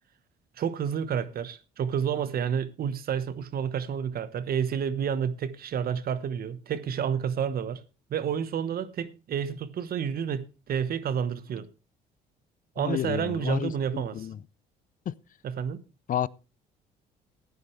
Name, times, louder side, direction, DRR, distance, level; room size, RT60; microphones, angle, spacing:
voice 1, 0.6-7.8 8.1-11.7 12.8-14.3 15.4-15.8, right 8 dB, 55° right, 1.1 m, -30 dB
voice 2, 12.8-14.4 15.1-15.2 16.1-16.3, left 10 dB, 50° left, 0.6 m, -31 dB
15.5 x 9.6 x 3.2 m
supercardioid pair, 65°, 18 cm